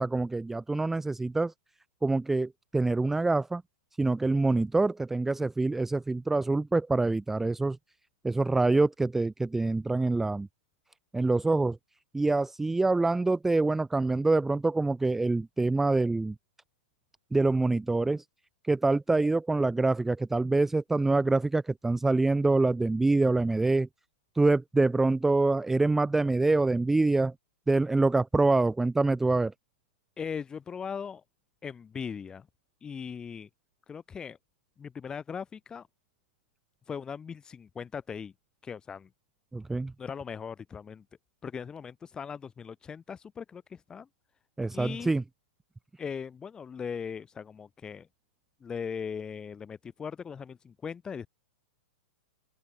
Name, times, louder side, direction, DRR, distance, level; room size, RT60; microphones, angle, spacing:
voice 1, 0.0-1.5 2.0-3.6 4.0-7.8 8.2-10.5 11.1-11.8 12.1-16.3 17.3-18.2 18.6-23.9 24.3-27.3 27.7-29.5 39.5-39.9 44.6-45.2, right 3 dB, 5° right, 0.7 m, -25 dB
voice 2, 30.2-31.2 31.6-32.5 32.8-33.5 33.9-34.4 34.8-35.9 36.9-38.3 38.6-39.1 40.0-41.0 41.4-44.1 44.7-45.1 46.0-48.1 48.6-51.3, left 6 dB, 10° left, 2.2 m, -39 dB
open air
hypercardioid pair, 160°, 6 cm